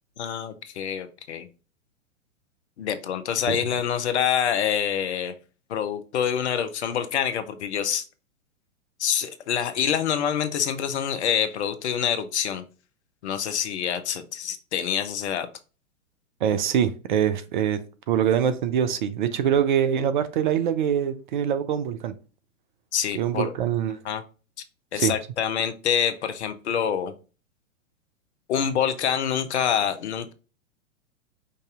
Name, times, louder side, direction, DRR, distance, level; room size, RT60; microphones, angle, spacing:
voice 1, 0.2-1.5 2.8-5.3 5.7-8.0 9.0-12.6 13.2-15.5 22.9-23.5 24.0-24.2 24.9-27.1 28.5-30.3, left 8 dB, 55° left, 0.8 m, -26 dB
voice 2, 16.4-17.8 18.1-22.1 23.2-24.0 24.9-25.1, right 9 dB, 40° right, 0.5 m, -24 dB
5.3 x 2.7 x 3.6 m
figure-of-eight pair, 110°, 40 cm